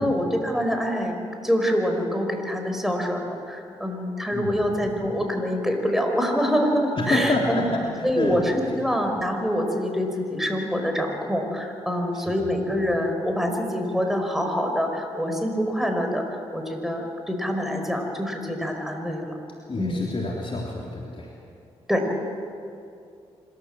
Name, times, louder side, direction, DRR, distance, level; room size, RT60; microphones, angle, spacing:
voice 1, 0.0-7.6 8.0-19.4 19.8-20.0 21.9-22.0, equal, ahead, 4 dB, 5.2 m, -25 dB
voice 2, 4.3-4.7 7.0-8.8 12.1-12.5 19.7-21.3, left 2 dB, 40° left, -3 dB, 3.5 m, -28 dB
26.0 x 13.5 x 7.7 m, 2.5 s
hypercardioid pair, 40°, 13 cm